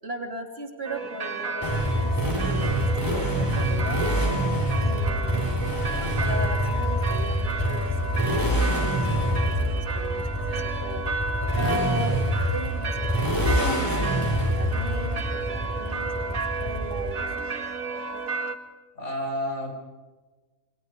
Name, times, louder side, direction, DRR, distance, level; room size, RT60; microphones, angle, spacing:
voice 1, 0.0-4.0 4.8-5.7 6.0-11.1 11.5-12.2 12.5-17.5, right 1 dB, 45° right, 3 dB, 3.0 m, -37 dB
sound 1, 0.8-18.6, right 3 dB, 85° right, 2.2 m, -32 dB
Motorcycle, 1.6-17.4, equal, 15° left, 5.5 m, -26 dB
voice 2, 18.9-19.7, left 1 dB, 60° left, 2 dB, 6.2 m, -30 dB
29.0 x 22.5 x 5.2 m, 1.3 s
omnidirectional pair, 1.4 m